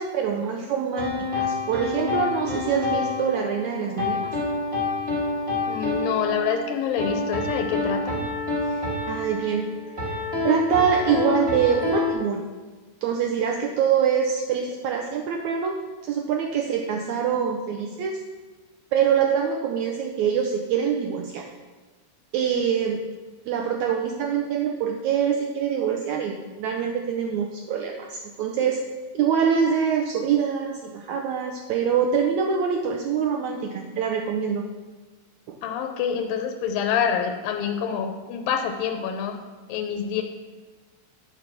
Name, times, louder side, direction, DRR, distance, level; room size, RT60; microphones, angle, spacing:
voice 1, 0.0-4.3 8.7-9.7 9.9-10.2 10.4-12.5 13.0-18.2 18.9-21.5 22.3-23.0 23.4-28.8 29.1-34.7 35.5-35.6, right 7 dB, 90° right, 2 dB, 1.6 m, -25 dB
sound 1, 1.0-12.1, left 3 dB, 15° right, 2.8 m, -28 dB
voice 2, 5.7-8.2 35.6-39.4 39.7-40.2, left 7 dB, 80° left, 4 dB, 2.4 m, -26 dB
9.0 x 6.7 x 6.1 m, 1.3 s
omnidirectional pair, 4.1 m